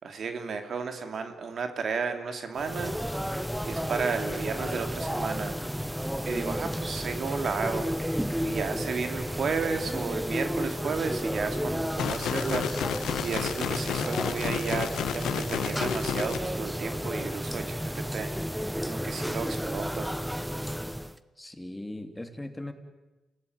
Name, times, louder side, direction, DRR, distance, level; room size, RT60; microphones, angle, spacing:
voice 1, 0.0-2.9 3.6-5.5 6.2-12.9 13.2-18.3 18.6-20.1, right 5 dB, 65° right, 7 dB, 2.8 m, -33 dB
sound 1, 2.6-21.2, equal, 5° right, 1.2 m, -32 dB
sound 2, 12.0-16.4, left 10 dB, 85° left, 1.2 m, -32 dB
voice 2, 21.4-22.7, left 1 dB, 10° left, 7 dB, 3.0 m, -39 dB
28.0 x 18.0 x 9.5 m, 1.1 s
supercardioid pair, 60°, 0 cm